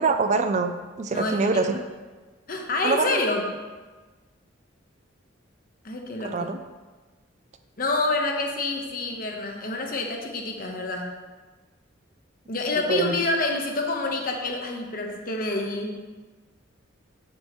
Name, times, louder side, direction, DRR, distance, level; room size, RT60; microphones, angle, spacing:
voice 1, 0.0-1.8 2.8-3.2 6.3-6.6 12.9-13.2, right 4 dB, 35° right, 8 dB, 0.4 m, -24 dB
voice 2, 1.1-1.8 2.5-3.4 5.8-6.5 7.8-11.1 12.5-16.0, left 2 dB, 45° left, 2 dB, 1.1 m, -27 dB
9.6 x 7.4 x 3.1 m, 1.3 s
head